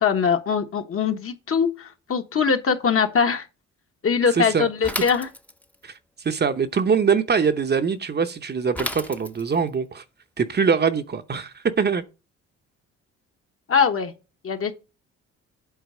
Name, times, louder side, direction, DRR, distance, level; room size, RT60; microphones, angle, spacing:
voice 1, 0.0-3.5 4.0-5.3 13.7-14.1 14.4-14.7, left 6 dB, 50° left, 1.3 m, -22 dB
voice 2, 4.3-4.7 5.8-5.9 6.2-10.0 10.4-12.0, right 6 dB, 35° right, 0.8 m, -23 dB
Bicycle / Mechanisms, 4.8-5.8 8.7-9.7, left 1 dB, 5° left, 0.7 m, -32 dB
8.1 x 4.0 x 6.3 m
cardioid pair, 90°, 30 cm